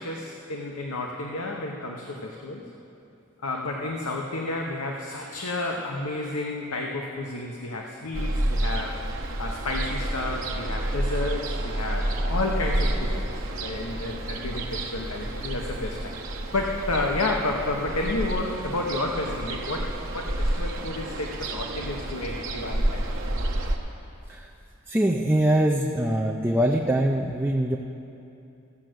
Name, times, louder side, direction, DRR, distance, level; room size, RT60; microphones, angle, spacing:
voice 1, 0.0-2.6 3.4-9.0 9.4-13.3 13.6-16.2 16.5-23.0, left 2 dB, 80° left, 0 dB, 0.9 m, -31 dB
Ocean, 8.1-23.8, right 1 dB, 55° right, 1.1 m, -29 dB
voice 2, 24.9-27.8, right 1 dB, 10° right, -2 dB, 0.4 m, -23 dB
15.5 x 6.4 x 7.7 m, 2.8 s
head